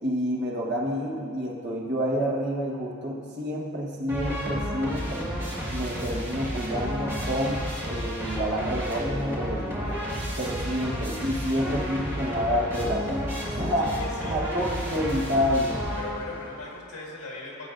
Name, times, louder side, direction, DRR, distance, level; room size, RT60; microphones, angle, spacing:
voice 1, 0.0-5.3 5.7-7.6 7.9-9.9 10.4-13.1 13.5-13.9 14.2-15.8, equal, 50° right, -2 dB, 1.3 m, -28 dB
sound 1, 4.1-16.5, equal, 10° right, 1.9 m, -31 dB
voice 2, 11.4-12.4 13.8-14.4 16.0-17.7, left 2 dB, 85° left, -3 dB, 1.8 m, -40 dB
15.0 x 7.9 x 2.6 m, 2.2 s
head